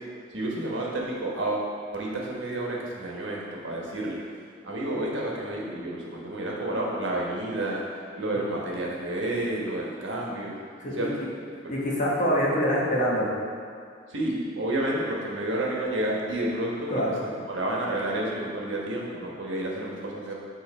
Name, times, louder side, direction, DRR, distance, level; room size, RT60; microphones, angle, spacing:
voice 1, 0.3-4.2 4.6-7.8 8.2-10.6 10.9-11.1 14.1-20.3, right 1 dB, 80° right, -3 dB, 1.3 m, -30 dB
voice 2, 11.7-13.3 16.9-17.2, equal, 40° left, -5 dB, 1.3 m, -25 dB
6.4 x 3.9 x 5.3 m, 2.3 s
head